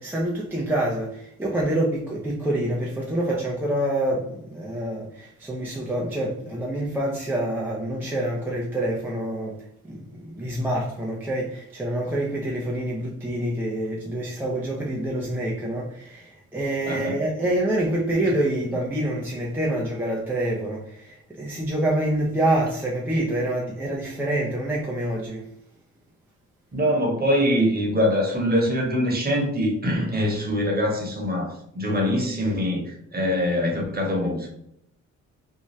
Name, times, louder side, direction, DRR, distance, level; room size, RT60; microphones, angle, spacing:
voice 1, 0.0-25.5, right 1 dB, 5° right, 0.5 m, -26 dB
voice 2, 16.9-17.2 26.7-34.5, equal, 30° right, 1.1 m, -23 dB
2.7 x 2.2 x 3.1 m
cardioid pair, 90°, 30 cm